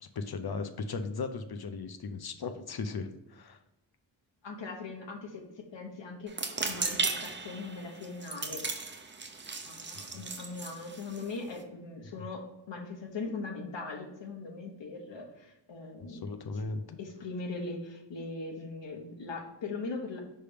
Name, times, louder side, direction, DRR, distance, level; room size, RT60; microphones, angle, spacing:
voice 1, 0.0-3.6 10.1-10.2 12.2-12.3 16.1-17.0, left 4 dB, 60° left, 8 dB, 0.6 m, -37 dB
voice 2, 4.4-5.4 5.7-8.7 9.6-16.3 17.0-20.2, left 3 dB, 85° left, 2 dB, 1.2 m, -40 dB
sound 1, 6.3-11.6, right 4 dB, 25° right, 0.6 m, -36 dB
5.7 x 3.4 x 5.0 m, 0.89 s
wide cardioid pair, 115°, 43 cm